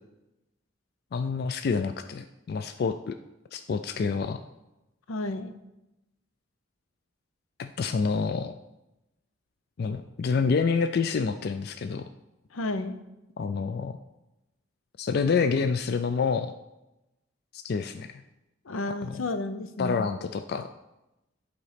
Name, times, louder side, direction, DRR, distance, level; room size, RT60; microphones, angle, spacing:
voice 1, 1.1-3.2 3.5-4.4 7.6-8.5 9.8-12.1 13.4-14.0 15.0-16.5 17.5-18.2 19.0-19.2 19.8-20.7, left 5 dB, 50° left, 9 dB, 0.3 m, -28 dB
voice 2, 5.1-5.5 12.5-13.0 18.7-20.0, left 2 dB, 85° left, 10 dB, 0.6 m, -32 dB
11.0 x 4.1 x 5.0 m, 0.96 s
head